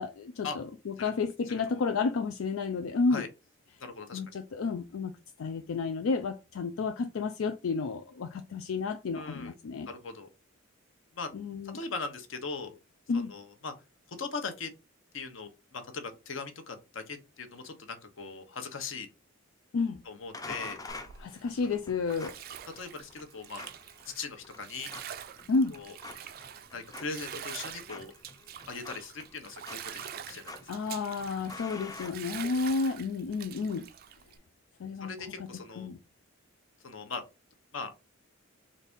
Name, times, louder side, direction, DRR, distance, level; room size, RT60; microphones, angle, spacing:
voice 1, 0.0-3.2 4.1-5.1 5.4-9.9 11.3-11.8 13.1-13.3 19.7-20.0 21.2-22.4 25.5-25.8 30.7-33.9 34.8-35.1 35.4-35.5 35.8-36.0, left 4 dB, 90° left, 0.4 m, -31 dB
voice 2, 3.8-4.4 9.1-9.5 9.9-10.3 11.1-11.3 11.7-12.8 13.1-13.7 14.1-14.7 15.1-19.1 20.0-20.8 22.8-23.6 24.1-24.9 25.7-25.9 26.7-28.1 28.7-30.5 35.0-35.9 36.8-37.2 37.7-37.9, left 4 dB, 70° left, 0.9 m, -39 dB
sound 1, 20.3-32.8, left 2 dB, 15° left, 0.4 m, -48 dB
Bathtub (filling or washing), 20.9-34.4, right 9 dB, 45° right, 0.3 m, -45 dB
4.1 x 2.6 x 3.5 m
head